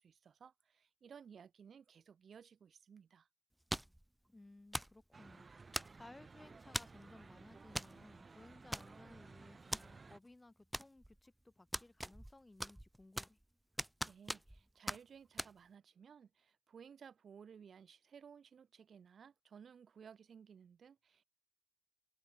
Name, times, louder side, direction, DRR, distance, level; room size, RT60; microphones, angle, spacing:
voice 1, 0.0-3.3 14.1-21.2, right 7 dB, 50° right, 2.1 m, -58 dB
sound 1, 3.7-4.0 4.7-5.0 5.7-6.2 6.7-7.0 7.7-7.9 8.2-8.3 8.7-9.2 9.7-9.8 10.7-11.2 11.7-12.3 12.6-13.4 13.8-14.6 14.9-15.0 15.4-15.5, right 1 dB, 5° right, 0.3 m, -41 dB
voice 2, 4.3-13.4, left 2 dB, 15° left, 4.2 m, -60 dB
sound 2, 5.1-10.2, right 4 dB, 30° right, 1.0 m, -57 dB
open air
cardioid pair, 90°, 0 cm